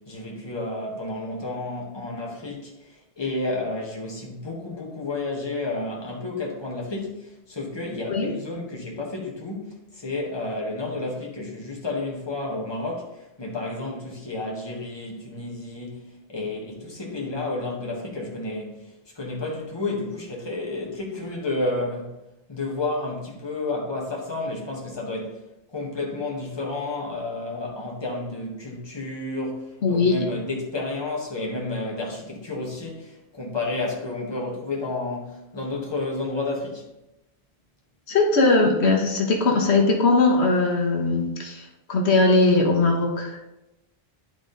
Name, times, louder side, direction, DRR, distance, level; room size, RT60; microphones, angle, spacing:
voice 1, 0.1-16.0 16.3-22.2 22.5-25.4 25.7-36.8, left 2 dB, 25° left, -2 dB, 1.6 m, -31 dB
voice 2, 29.8-30.2 38.1-43.4, left 3 dB, 75° left, 0 dB, 1.4 m, -20 dB
11.0 x 3.7 x 4.0 m, 0.93 s
omnidirectional pair, 1.1 m